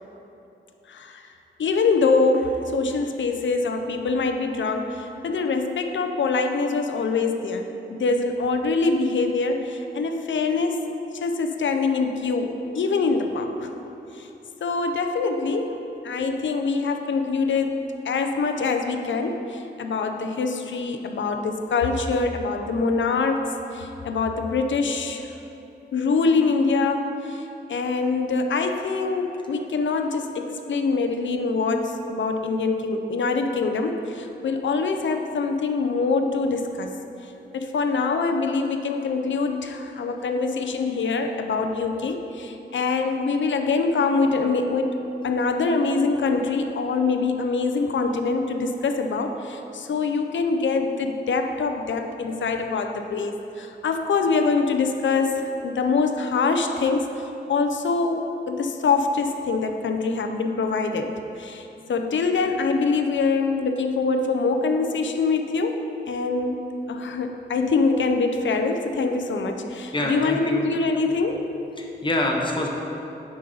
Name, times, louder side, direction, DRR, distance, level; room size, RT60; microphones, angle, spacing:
voice 1, 0.9-1.3 1.6-10.9 11.1-13.7 14.1-14.3 14.6-15.8 16.0-17.8 18.0-23.5 23.7-25.3 25.9-36.9 37.5-45.0 45.2-66.6 66.9-71.5, left 4 dB, 90° left, 5 dB, 0.6 m, -24 dB
voice 2, 69.9-70.7 71.8-72.7, left 1 dB, 25° left, -1 dB, 1.0 m, -25 dB
9.5 x 5.3 x 3.9 m, 3.0 s
wide cardioid pair, 100°, 19 cm